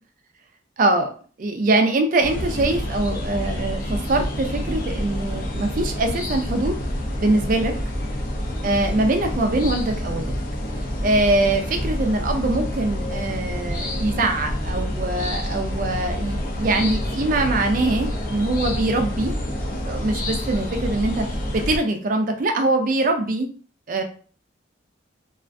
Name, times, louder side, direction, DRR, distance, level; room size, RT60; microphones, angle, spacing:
voice 1, 0.8-6.7 7.2-7.7 8.6-10.3 11.0-19.3 19.9-23.5 23.9-24.0, right 2 dB, 45° right, 5 dB, 0.3 m, -23 dB
sound 1, 2.2-21.8, left 1 dB, 45° left, 0.4 m, -28 dB
2.4 x 2.2 x 2.4 m, 0.42 s
head